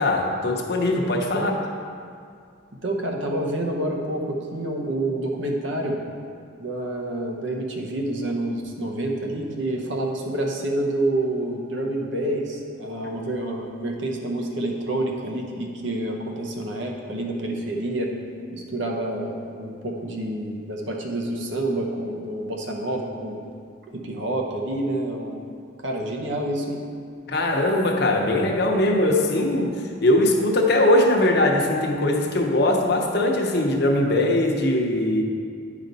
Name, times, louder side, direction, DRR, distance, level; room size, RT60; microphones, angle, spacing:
voice 1, 0.0-1.5 27.3-35.2, left 1 dB, 55° left, 1 dB, 0.8 m, -21 dB
voice 2, 2.8-6.0 6.6-18.1 18.5-23.4 23.9-26.8, right 1 dB, 70° right, 1 dB, 1.0 m, -28 dB
9.1 x 5.1 x 4.0 m, 2.3 s
head